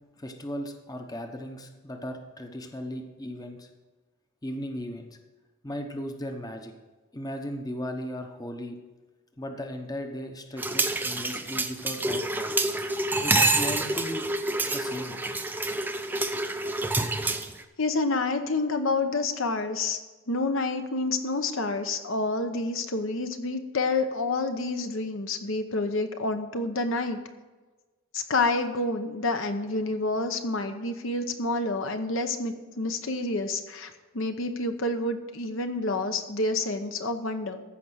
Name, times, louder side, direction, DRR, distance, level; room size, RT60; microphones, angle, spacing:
voice 1, 0.2-3.7 4.4-5.1 5.6-6.7 7.1-8.8 9.4-12.5 13.2-14.3 14.6-15.2, equal, 15° left, 5 dB, 0.8 m, -36 dB
sound 1, 10.6-17.6, right 2 dB, 10° right, 0.5 m, -27 dB
voice 2, 17.8-20.0 20.3-27.2 28.1-37.6, left 2 dB, 60° left, 7 dB, 0.9 m, -28 dB
14.5 x 5.4 x 6.3 m, 1.3 s
head